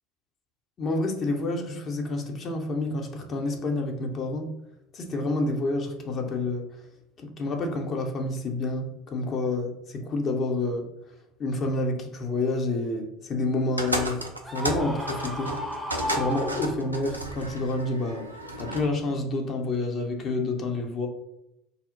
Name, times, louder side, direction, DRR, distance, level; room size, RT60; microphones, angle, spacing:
voice 1, 0.8-4.5 4.9-6.7 7.2-10.9 11.4-15.6 16.1-18.3 18.6-21.1, left 2 dB, 40° left, 3 dB, 0.7 m, -29 dB
sound 1, 13.8-18.9, right 1 dB, 90° right, 0.4 m, -33 dB
Screaming, 14.4-17.1, equal, 15° right, 0.6 m, -34 dB
2.8 x 2.0 x 3.8 m, 0.85 s
figure-of-eight pair, 65°, 0 cm